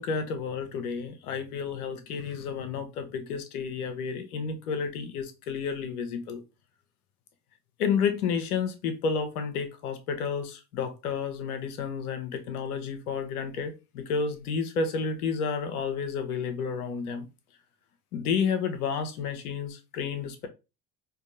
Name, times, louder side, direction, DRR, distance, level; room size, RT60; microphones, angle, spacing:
voice 1, 0.0-6.4 7.8-17.3 18.1-20.5, left 6 dB, 70° left, 0.8 m, -31 dB
4.6 x 2.3 x 2.6 m
figure-of-eight pair, 55°, 46 cm